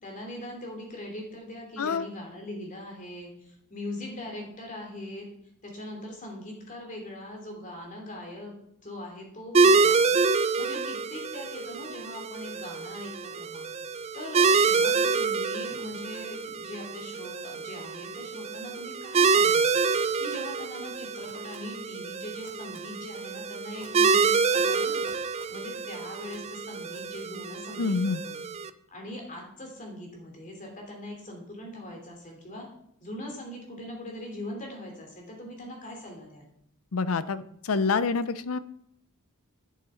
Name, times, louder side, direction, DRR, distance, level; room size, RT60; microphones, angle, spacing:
voice 1, 0.0-5.3 5.6-10.1 10.6-13.7 14.1-25.0 25.5-28.4 28.9-32.7 33.0-36.5, left 1 dB, 35° left, 1 dB, 2.8 m, -41 dB
sound 1, 9.5-28.7, right 4 dB, 30° right, 0.4 m, -27 dB
sound 2, 20.0-20.3 21.2-21.6 22.4-22.8 23.8-24.3 25.1-25.6 26.3-26.4 26.9-27.0, right 2 dB, 10° right, 2.5 m, -53 dB
voice 2, 27.8-28.2 36.9-38.6, left 4 dB, 70° left, 14 dB, 0.6 m, -27 dB
11.5 x 6.5 x 4.4 m, 0.72 s
head